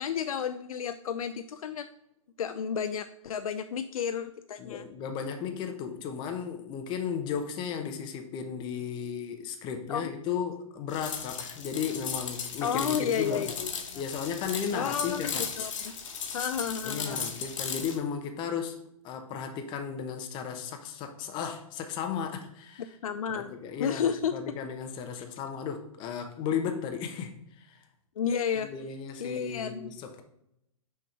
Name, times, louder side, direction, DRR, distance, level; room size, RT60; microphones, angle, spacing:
voice 1, 0.0-1.9 2.4-4.9 9.9-10.1 12.6-14.0 14.7-15.3 15.6-15.9 16.3-17.2 23.0-24.4 28.2-28.7 29.2-30.0, left 7 dB, 80° left, 0.4 m, -32 dB
voice 2, 4.6-13.5 13.9-15.4 16.8-18.8 19.0-22.8 23.3-27.8 28.5-30.2, left 7 dB, 25° left, 0.8 m, -35 dB
sound 1, 10.9-18.0, left 6 dB, 65° left, 1.3 m, -36 dB
6.1 x 3.6 x 4.4 m
hypercardioid pair, 125°, 18 cm